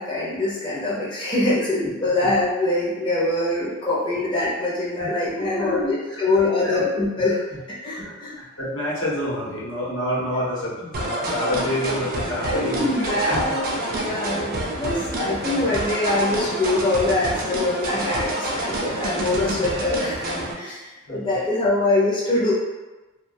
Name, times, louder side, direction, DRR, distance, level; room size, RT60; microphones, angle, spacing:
voice 1, 0.0-7.4 7.8-8.4 12.4-20.3 20.6-22.5, left 2 dB, 25° left, -8 dB, 0.5 m, -24 dB
voice 2, 5.0-6.2 6.6-6.8 7.9-12.9 13.3-13.4 21.1-21.4, left 1 dB, 85° left, -7 dB, 0.9 m, -28 dB
sound 1, 10.9-20.5, right 1 dB, 45° right, 0.4 m, -28 dB
2.2 x 2.2 x 2.6 m, 1.1 s
head